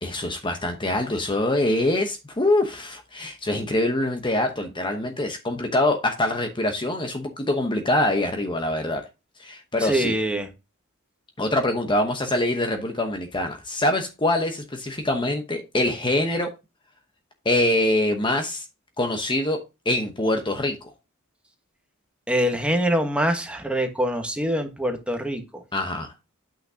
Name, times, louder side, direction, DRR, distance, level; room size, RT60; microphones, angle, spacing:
voice 1, 0.0-9.0 9.4-10.1 11.4-16.5 17.4-18.7 19.0-19.6 19.8-20.9 25.7-26.1, left 1 dB, 20° left, 5 dB, 0.9 m, -24 dB
voice 2, 9.8-10.5 22.3-25.6, equal, 5° right, 4 dB, 1.3 m, -24 dB
8.7 x 5.8 x 2.8 m, 0.26 s
head